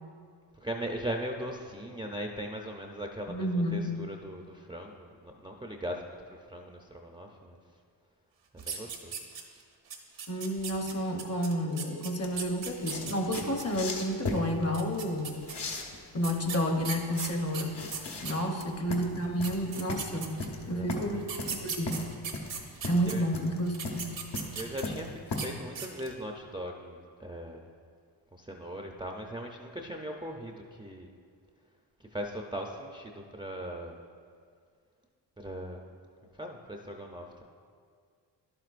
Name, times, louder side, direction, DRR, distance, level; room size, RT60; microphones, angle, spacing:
voice 1, 0.6-7.6 8.5-9.2 18.1-18.5 20.7-21.2 23.0-23.2 24.6-27.7 28.3-31.1 32.1-34.0 35.4-35.9 36.4-37.4, equal, 10° right, 1 dB, 0.5 m, -39 dB
voice 2, 3.3-3.9 10.3-15.4 16.1-17.9 18.2-20.4 20.7-21.2 21.6-22.1 22.9-24.1, equal, 35° left, 3 dB, 1.0 m, -30 dB
sound 1, 8.6-9.6 9.9-13.6 14.6-15.5 16.2-18.7 19.2-19.3 19.4-20.6 21.2-23.1 23.7-25.0 25.3-25.5 25.7-26.2, right 6 dB, 75° right, 1.0 m, -38 dB
sound 2, 12.2-25.4, left 2 dB, 65° left, 1.2 m, -38 dB
11.0 x 7.8 x 2.5 m, 2.1 s
cardioid pair, 70°, 44 cm